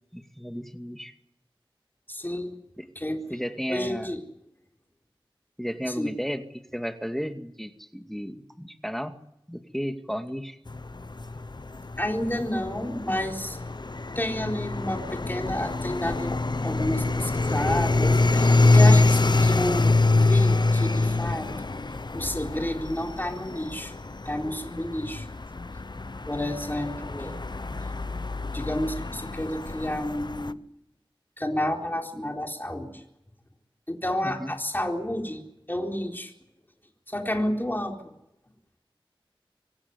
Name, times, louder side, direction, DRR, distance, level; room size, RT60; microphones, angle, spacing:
voice 1, 0.1-1.1 2.8-2.9 3.3-4.1 5.6-6.4 6.7-9.2 9.5-10.6 34.2-34.5, equal, 5° left, 6 dB, 2.2 m, -33 dB
voice 2, 2.1-2.5 2.9-3.2 3.7-4.2 5.8-6.1 12.0-13.6 14.1-16.4 16.6-21.5 22.1-23.9 24.2-25.3 26.3-27.4 28.5-30.6 31.4-33.0 33.9-35.4 35.7-36.3 37.1-38.1, left 1 dB, 20° left, 2 dB, 4.1 m, -30 dB
sound 1, 10.7-30.5, left 3 dB, 55° left, 0.8 m, -25 dB
25.5 x 16.0 x 9.7 m, 0.84 s
wide cardioid pair, 45°, 9 cm